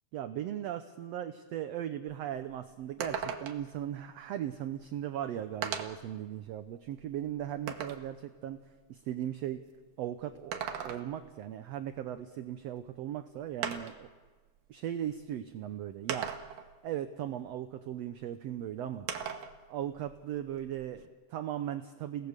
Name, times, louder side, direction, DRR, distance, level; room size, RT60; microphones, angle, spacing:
voice 1, 0.1-8.6 8.9-9.6 10.0-14.1 14.7-16.4 16.8-19.1 19.7-22.3, right 11 dB, 75° right, 9 dB, 1.6 m, -38 dB
sound 1, 2.1-2.2 2.5-2.6 3.0-3.8 4.8-4.9 5.6-6.1 6.7-8.1 10.3-11.3 12.8-12.9 13.6-14.1 15.1-15.2 16.1-16.7 19.1-19.6 19.9-21.0, right 7 dB, 90° right, 2.9 m, -38 dB
30.0 x 17.5 x 6.6 m, 1.4 s
omnidirectional pair, 3.7 m